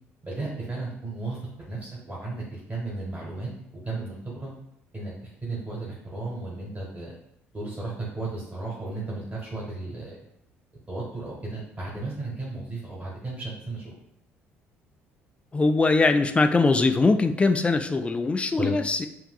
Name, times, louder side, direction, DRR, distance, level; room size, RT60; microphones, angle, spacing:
voice 1, 0.2-3.5 3.8-4.5 4.9-7.1 7.5-10.2 10.9-13.9 18.6-18.7, right 2 dB, 20° right, -5 dB, 1.4 m, -34 dB
voice 2, 15.5-19.1, left 3 dB, 15° left, 7 dB, 0.4 m, -21 dB
7.5 x 2.6 x 2.3 m, 0.76 s
figure-of-eight pair, 50°, 7 cm